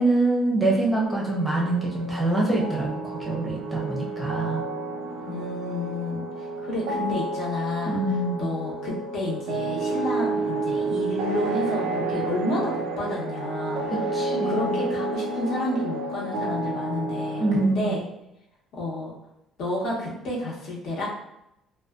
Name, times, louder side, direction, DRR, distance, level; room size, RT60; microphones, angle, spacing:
voice 1, 0.0-4.6 7.9-8.4 13.9-14.8 17.4-18.0, right 2 dB, 10° right, -4 dB, 0.6 m, -25 dB
sound 1, 1.0-17.6, right 3 dB, 85° right, 0.3 m, -30 dB
voice 2, 5.3-8.0 8.4-13.9 14.3-18.0 18.7-19.1 19.6-21.1, left 1 dB, 65° left, -4 dB, 0.8 m, -30 dB
2.4 x 2.2 x 2.3 m, 0.84 s
cardioid pair, 115°, 0 cm